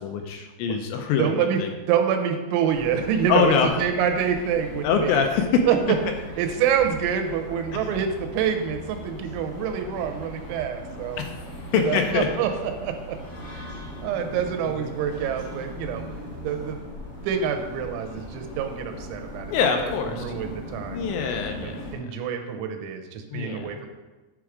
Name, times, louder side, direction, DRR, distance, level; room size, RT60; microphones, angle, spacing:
voice 1, 0.0-1.7 3.3-3.7 4.8-5.7 11.2-11.3 11.7-12.3 14.3-14.4 14.7-14.8 19.5-20.2 20.9-21.8 23.3-23.8, left 6 dB, 85° left, 4 dB, 2.8 m, -24 dB
voice 2, 1.2-1.6 1.9-5.2 5.7-6.0 6.4-11.2 11.7-13.2 13.5-13.7 14.0-16.0 16.4-16.8 17.2-19.5 19.8-21.1 21.6-23.9, right 8 dB, 90° right, 5 dB, 3.1 m, -26 dB
sound 1, 2.7-22.0, equal, 35° left, 3.4 m, -39 dB
9.8 x 4.9 x 4.7 m, 1.2 s
omnidirectional pair, 5.4 m